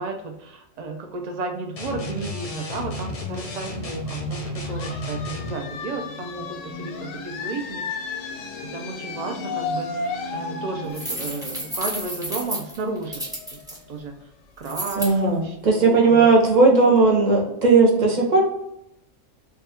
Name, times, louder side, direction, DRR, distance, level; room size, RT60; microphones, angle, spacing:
voice 1, 0.0-8.3 8.6-13.3 13.5-13.6 13.9-14.2 14.6-16.3 16.5-17.0, right 3 dB, 80° right, 3 dB, 0.3 m, -33 dB
sound 1, 1.8-5.6, left 1 dB, 50° left, 0.4 m, -32 dB
sound 2, 4.6-14.1, left 4 dB, 90° left, 1.0 m, -34 dB
sound 3, 10.9-13.8 14.6-15.1, equal, 5° right, 0.7 m, -31 dB
voice 2, 15.0-18.4, right 3 dB, 40° right, -1 dB, 0.9 m, -17 dB
3.4 x 2.3 x 4.2 m, 0.81 s
omnidirectional pair, 1.3 m